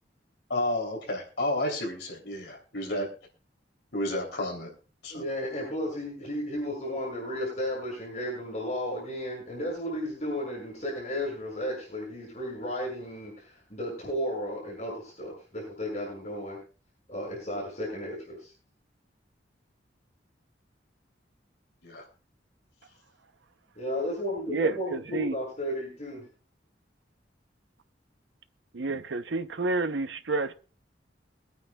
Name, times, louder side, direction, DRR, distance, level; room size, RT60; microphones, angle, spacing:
voice 1, 0.5-3.1 3.9-4.7 5.0-5.2 21.8-22.1, left 1 dB, 70° left, 3.2 m, -31 dB
voice 2, 5.1-16.6 17.1-18.5 23.7-26.2, equal, 40° left, 6.3 m, -34 dB
voice 3, 24.5-25.3 28.7-30.5, right 3 dB, 85° right, 0.7 m, -29 dB
23.0 x 9.2 x 2.3 m
head